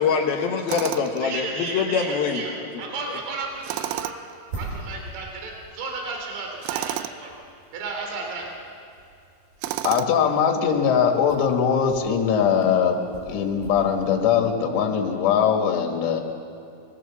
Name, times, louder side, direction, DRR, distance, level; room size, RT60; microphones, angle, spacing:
voice 1, 0.0-2.4 3.1-3.2, left 6 dB, 70° left, 1 dB, 2.4 m, -24 dB
Tools, 0.7-1.3 3.6-4.4 6.6-7.2 9.6-10.3, right 14 dB, 85° right, 3.3 m, -30 dB
voice 2, 1.2-2.5 2.8-4.1 4.6-7.3 7.7-8.5, right 3 dB, 60° right, 1 dB, 5.0 m, -33 dB
sound 1, 3.0-14.1, right 3 dB, 40° right, 7.0 m, -44 dB
voice 3, 9.8-13.0 13.3-16.2, left 7 dB, 85° left, 3 dB, 4.6 m, -21 dB
24.5 x 18.5 x 7.2 m, 2.5 s
omnidirectional pair, 6.0 m